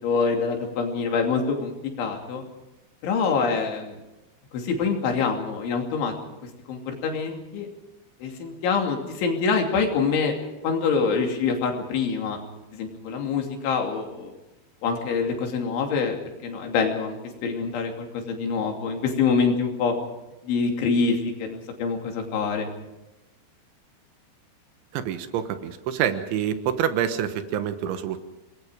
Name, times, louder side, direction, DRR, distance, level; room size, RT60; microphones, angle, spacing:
voice 1, 0.0-2.4 3.0-3.9 4.5-6.1 6.7-7.7 8.2-12.4 12.7-14.3 14.8-16.2 16.4-19.9 20.4-22.7, left 5 dB, 85° left, 2 dB, 5.2 m, -25 dB
voice 2, 24.9-28.2, right 9 dB, 85° right, 10 dB, 3.6 m, -27 dB
27.5 x 20.0 x 5.1 m, 0.98 s
omnidirectional pair, 5.3 m